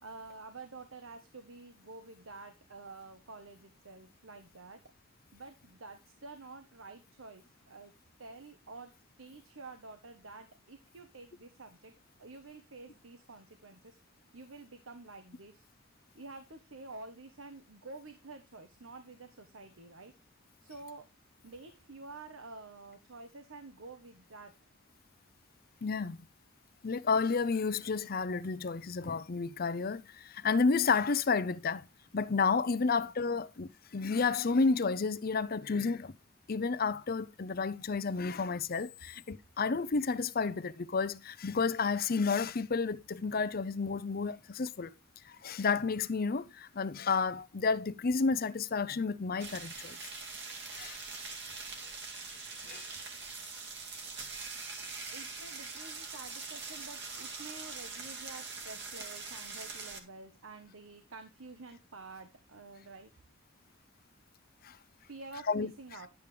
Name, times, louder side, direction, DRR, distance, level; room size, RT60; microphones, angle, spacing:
voice 1, 0.0-4.8 5.3-7.9 8.2-8.9 9.2-11.9 12.2-14.0 14.3-15.7 16.1-20.1 20.6-21.1 21.4-24.5 32.8-33.1 55.1-63.1 65.1-66.1, right 3 dB, 75° right, 1.3 m, -49 dB
voice 2, 25.8-26.2 26.8-31.9 32.1-36.1 36.5-44.9 45.3-50.0 50.7-51.0 52.6-52.9 64.6-64.8 65.5-65.7, left 4 dB, 45° left, 0.6 m, -31 dB
sound 1, 49.4-60.0, right 4 dB, 55° right, 2.1 m, -43 dB
11.0 x 8.4 x 3.3 m
head